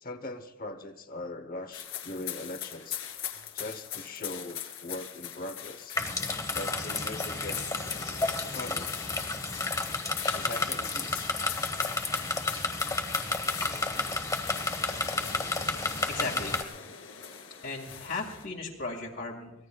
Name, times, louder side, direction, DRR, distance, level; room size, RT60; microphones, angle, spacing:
voice 1, 0.0-3.0 3.5-6.0 6.5-7.6 8.5-9.1 10.3-11.3, left 2 dB, 45° left, 9 dB, 1.0 m, -40 dB
sound 1, 1.7-18.4, left 9 dB, 80° left, 2.4 m, -42 dB
sound 2, 6.0-16.6, left 3 dB, 15° left, 1.0 m, -31 dB
voice 2, 16.1-16.6 17.6-19.5, left 3 dB, 60° left, -2 dB, 2.2 m, -36 dB
24.5 x 19.0 x 2.4 m, 1.0 s
head